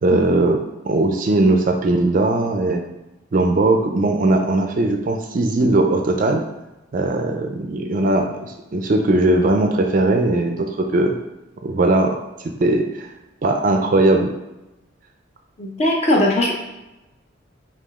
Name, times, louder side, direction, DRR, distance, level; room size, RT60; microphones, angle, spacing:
voice 1, 0.0-0.6 0.8-2.8 3.3-6.4 6.9-11.2 11.6-12.2 12.6-13.1 13.4-14.3, right 2 dB, 40° right, 3 dB, 0.4 m, -19 dB
voice 2, 15.6-16.5, left 1 dB, 30° left, 0 dB, 0.6 m, -19 dB
4.9 x 2.4 x 3.5 m, 1.0 s
head